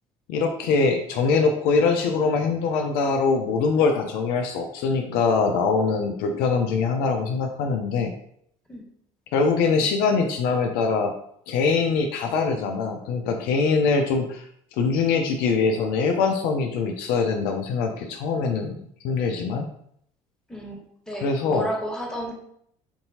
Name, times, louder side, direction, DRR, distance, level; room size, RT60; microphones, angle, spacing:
voice 1, 0.3-8.1 9.3-11.1 11.5-14.5 14.8-18.8 19.0-19.7 21.2-21.7, left 4 dB, 65° left, 4 dB, 0.5 m, -23 dB
voice 2, 21.1-22.3, equal, 5° left, -2 dB, 1.5 m, -31 dB
4.4 x 2.8 x 2.8 m, 0.68 s
hypercardioid pair, 70°, 17 cm